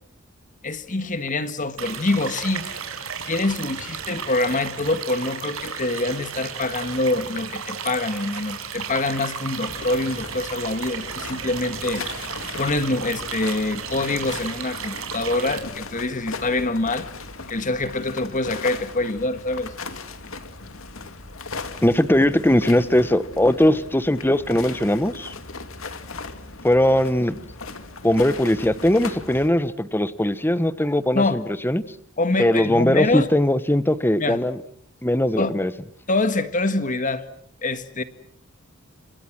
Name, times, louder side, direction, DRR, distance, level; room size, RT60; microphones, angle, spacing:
voice 1, 0.6-2.7 3.3-12.0 12.6-17.1 17.5-19.7 31.1-31.4 32.2-33.3 34.2-34.4 35.4-35.5 36.1-37.2 37.6-38.0, left 2 dB, 40° left, 11 dB, 1.6 m, -25 dB
sound 1, 1.8-15.6, right 6 dB, 80° right, 5.5 m, -34 dB
sound 2, 9.7-29.5, left 3 dB, 75° left, 2.7 m, -37 dB
voice 2, 21.8-25.3 26.6-27.4 28.0-31.8 32.4-34.6 35.0-35.7, left 1 dB, 10° left, 14 dB, 1.2 m, -20 dB
30.0 x 27.0 x 6.1 m, 0.64 s
head